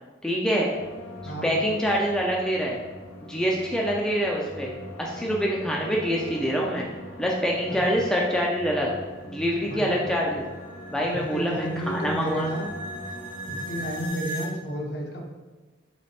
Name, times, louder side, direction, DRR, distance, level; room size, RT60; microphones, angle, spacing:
voice 1, 0.2-0.7 1.4-2.8 3.3-6.9 7.2-8.9 9.3-10.4 10.9-12.5, equal, 5° left, -3 dB, 0.3 m, -25 dB
sound 1, 0.7-14.1, equal, 90° left, 1.1 m, -42 dB
sound 2, 8.6-14.5, equal, 70° right, 0.8 m, -40 dB
voice 2, 9.7-10.0 11.1-12.7 13.5-15.2, right 1 dB, 55° left, 1 dB, 0.6 m, -31 dB
3.2 x 3.2 x 4.1 m, 1.3 s
head